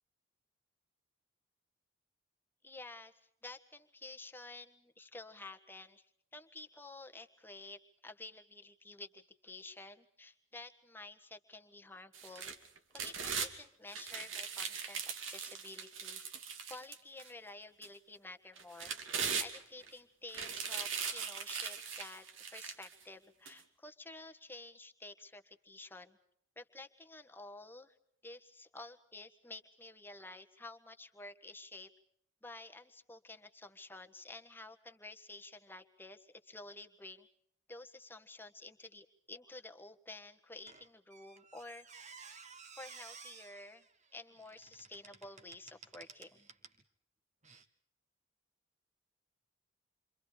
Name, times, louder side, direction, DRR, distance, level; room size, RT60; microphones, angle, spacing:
voice 1, 2.6-3.1 3.4-12.5 12.9-16.2 16.7-19.0 19.4-22.2 22.5-26.2 26.6-27.9 28.2-31.9 32.4-37.3 37.7-41.9 42.8-43.8 44.1-46.5, left 2 dB, 10° left, 6 dB, 1.5 m, -51 dB
sound 1, 12.1-13.5 13.9-17.3 17.8-17.9 18.6-19.9 20.3-22.9 23.5-23.6, right 6 dB, 75° right, 2.6 m, -40 dB
Squeak, 40.7-46.8 47.4-47.6, right 5 dB, 35° right, 1.6 m, -55 dB
29.0 x 25.5 x 5.0 m, 0.69 s
head